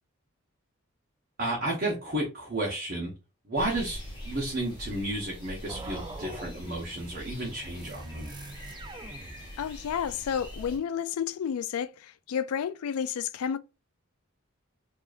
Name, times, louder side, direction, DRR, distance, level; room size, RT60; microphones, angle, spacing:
voice 1, 1.4-3.1 3.5-8.3, right 1 dB, 45° right, 1.0 m, -32 dB
sound 1, 3.5-10.8, equal, 20° left, 1.4 m, -43 dB
sound 2, 5.7-9.8, right 2 dB, 20° right, 0.3 m, -44 dB
voice 2, 9.6-11.9 12.3-13.6, left 8 dB, 90° left, 0.3 m, -30 dB
4.8 x 2.8 x 2.5 m
head